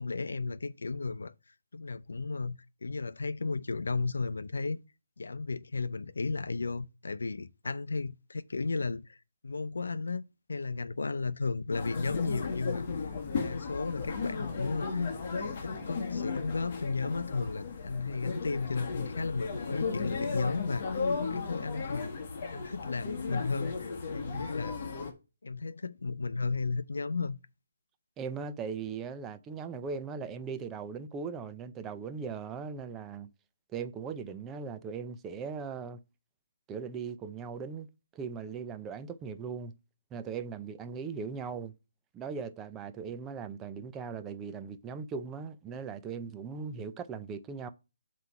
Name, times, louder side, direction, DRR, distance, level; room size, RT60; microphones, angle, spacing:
voice 1, 0.0-1.3 1.7-4.8 5.2-9.2 9.4-10.2 10.5-22.2 22.5-24.8 25.4-27.4, left 4 dB, 85° left, 0.6 m, -34 dB
sound 1, 11.7-25.1, left 4 dB, 35° left, 1.5 m, -35 dB
voice 2, 28.2-33.3 33.7-36.0 36.7-39.7 40.1-41.7 42.1-47.7, right 5 dB, 10° right, 0.5 m, -39 dB
7.9 x 3.2 x 5.6 m
hypercardioid pair, 170°, 0 cm